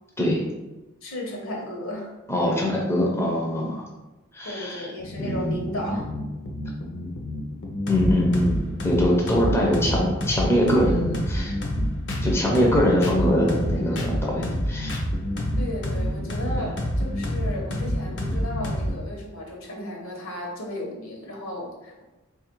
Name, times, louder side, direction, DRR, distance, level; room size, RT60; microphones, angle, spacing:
voice 1, 1.0-2.1 4.4-6.1 15.6-22.0, left 1 dB, 70° left, 0 dB, 1.0 m, -34 dB
voice 2, 2.3-3.8 4.3-4.9 5.2-5.5 7.9-8.6 8.8-11.6 12.2-15.0 16.6-16.7, equal, 10° left, -3 dB, 0.5 m, -23 dB
sound 1, 5.0-19.0, equal, 55° left, 0.6 m, -28 dB
3.3 x 2.4 x 4.4 m, 1.1 s
head